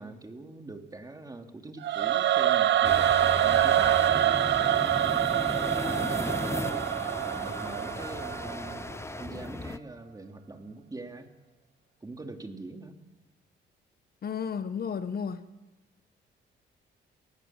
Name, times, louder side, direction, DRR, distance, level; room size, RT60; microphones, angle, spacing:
voice 1, 0.0-5.1 5.9-6.9 7.2-11.3 12.0-12.9, right 2 dB, 20° right, 4 dB, 2.9 m, -43 dB
Singing / Musical instrument, 1.8-8.9, right 11 dB, 65° right, 1.0 m, -25 dB
sound 1, 2.8-9.8, left 2 dB, 15° left, 0.9 m, -36 dB
voice 2, 14.2-15.4, left 6 dB, 50° left, 11 dB, 1.3 m, -32 dB
28.0 x 19.5 x 7.5 m, 1.1 s
cardioid pair, 90°, 20 cm